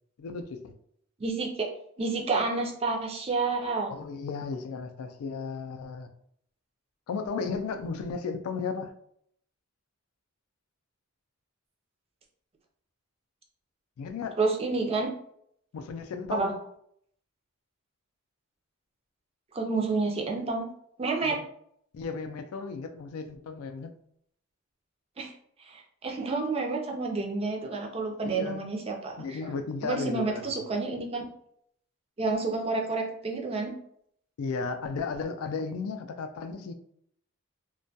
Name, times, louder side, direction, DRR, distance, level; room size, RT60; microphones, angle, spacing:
voice 1, 0.2-0.7 3.9-6.1 7.1-8.9 14.0-14.4 15.7-16.6 21.2-21.4 21.9-23.9 28.2-28.6 29.2-30.5 34.4-36.7, left 5 dB, 85° left, 8 dB, 0.3 m, -34 dB
voice 2, 1.2-1.7 2.0-3.9 14.4-15.1 16.3-16.5 19.5-20.7 21.0-21.4 25.2-25.3 25.6-29.5 29.8-31.3 32.2-33.7, right 3 dB, 30° right, 1 dB, 0.4 m, -29 dB
2.2 x 2.1 x 2.6 m, 0.67 s
head